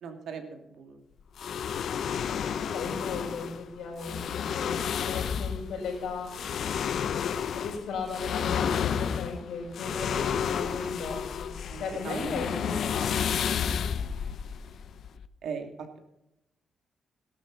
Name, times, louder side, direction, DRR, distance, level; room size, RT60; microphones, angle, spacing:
voice 1, 0.0-1.0 10.3-10.6 11.7-12.3 15.4-15.7, right 6 dB, 75° right, 5 dB, 2.7 m, -39 dB
sound 1, 1.4-15.3, left 8 dB, 65° left, 0.7 m, -31 dB
voice 2, 2.5-6.3 7.1-13.4, left 4 dB, 90° left, 0 dB, 6.0 m, -37 dB
17.5 x 12.0 x 4.1 m, 0.89 s
wide cardioid pair, 145°, 0 cm